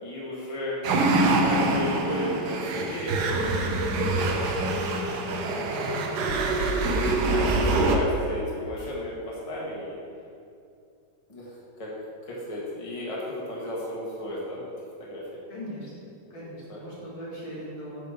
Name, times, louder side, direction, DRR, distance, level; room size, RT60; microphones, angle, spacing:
voice 1, 0.0-0.8 1.1-3.3 3.9-4.8 5.1-6.0 7.0-10.0 11.3-11.9 12.2-14.7 15.0-15.2 16.2-17.0, left 1 dB, 20° left, -6 dB, 1.1 m, -34 dB
sound 1, 0.8-8.0, right 2 dB, 70° right, 1.0 m, -25 dB
voice 2, 4.0-4.3 15.5-15.9 16.3-18.1, equal, 65° left, -8 dB, 2.8 m, -39 dB
8.5 x 3.7 x 5.2 m, 2.5 s
omnidirectional pair, 2.4 m